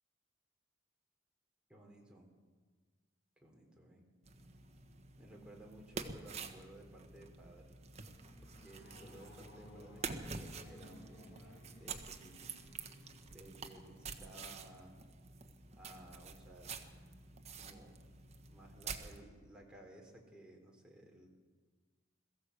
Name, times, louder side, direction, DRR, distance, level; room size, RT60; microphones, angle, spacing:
voice 1, 1.7-2.3 3.4-4.1 5.2-7.7 8.4-12.5 13.3-15.1 15.7-16.9 17.5-18.0 18.5-21.3, right 1 dB, 5° right, -1 dB, 3.7 m, -57 dB
sound 1, 4.2-19.2, right 4 dB, 35° right, 1.4 m, -48 dB
sound 2, 7.6-14.6, left 1 dB, 70° left, 2.3 m, -59 dB
22.0 x 14.5 x 8.2 m, 1.4 s
head